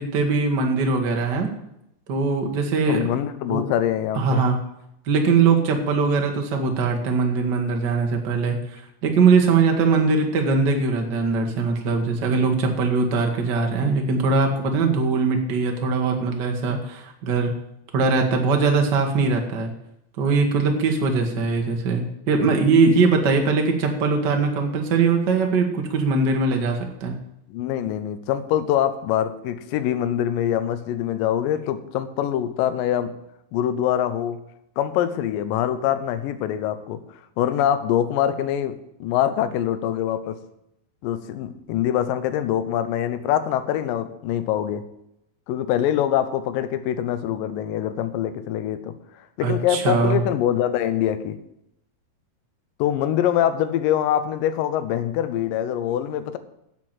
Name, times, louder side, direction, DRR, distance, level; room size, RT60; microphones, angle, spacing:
voice 1, 0.0-1.5 2.1-3.1 3.5-3.6 4.1-4.6 5.1-17.5 17.9-19.7 20.2-27.1 49.4-50.2, right 4 dB, 50° right, 3 dB, 1.3 m, -21 dB
voice 2, 2.9-4.4 27.5-33.2 33.5-34.4 34.8-37.0 37.4-40.4 41.0-44.8 45.5-49.0 49.4-51.4 52.8-56.4, left 10 dB, 75° left, 11 dB, 2.3 m, -24 dB
9.6 x 7.6 x 7.9 m, 0.80 s
omnidirectional pair, 4.3 m